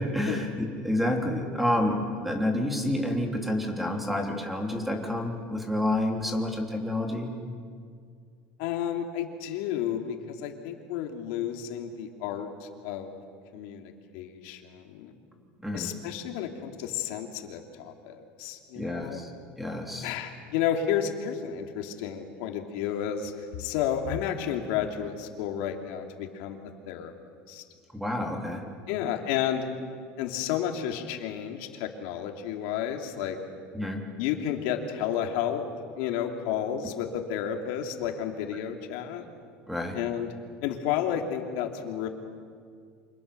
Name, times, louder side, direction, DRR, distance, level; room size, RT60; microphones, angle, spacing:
voice 1, 0.0-7.3 15.6-15.9 18.8-19.3 19.6-20.1 27.9-28.6 33.7-34.0 39.7-40.0, left 1 dB, ahead, 2 dB, 3.2 m, -29 dB
voice 2, 8.6-13.1 13.5-15.1 15.7-19.2 20.0-27.1 27.5-27.6 28.9-29.7 30.2-33.4 34.2-35.6 36.0-39.3 39.9-40.3 40.6-42.1, left 9 dB, 70° left, 3 dB, 3.0 m, -31 dB
28.5 x 26.0 x 6.9 m, 2.1 s
cardioid pair, 150°, 5 cm